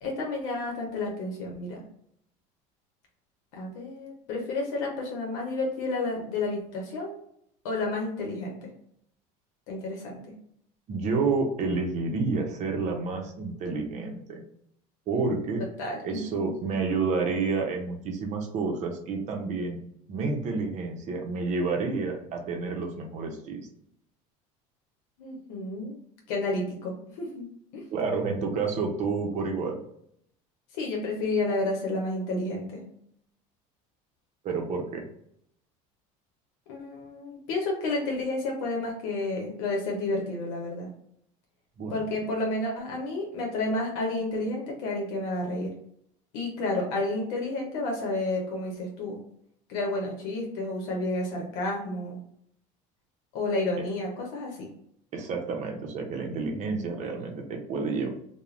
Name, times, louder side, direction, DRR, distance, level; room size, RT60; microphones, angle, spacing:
voice 1, 0.0-1.8 3.5-7.1 7.6-8.7 9.7-10.2 15.8-16.5 25.2-26.0 26.3-27.4 27.7-27.8 30.8-32.8 36.7-40.9 41.9-45.7 46.3-49.2 49.7-52.2 53.3-54.7, left 2 dB, 80° left, 0 dB, 0.8 m, -31 dB
voice 2, 10.9-14.4 15.1-15.6 16.0-19.8 20.1-23.6 27.9-29.8 34.4-35.0 41.8-41.9 55.1-58.1, right 4 dB, 45° right, 2 dB, 0.7 m, -29 dB
2.3 x 2.2 x 3.1 m, 0.70 s
supercardioid pair, 120°, 17 cm